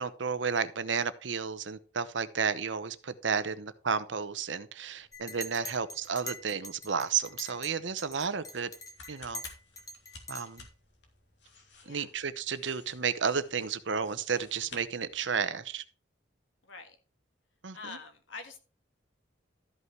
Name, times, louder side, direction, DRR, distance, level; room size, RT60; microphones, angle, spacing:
voice 1, 0.0-8.7 9.1-9.4 10.3-10.7 11.9-15.8 17.6-18.0, right 6 dB, 80° right, 0.8 m, -32 dB
sound 1, 4.9-15.6, left 3 dB, 65° left, 2.6 m, -55 dB
Chink clink, 5.1-7.7 8.0-10.7, left 1 dB, 20° left, 1.2 m, -43 dB
voice 2, 16.6-17.0 17.7-18.6, left 4 dB, 90° left, 1.9 m, -45 dB
13.0 x 5.5 x 4.6 m
head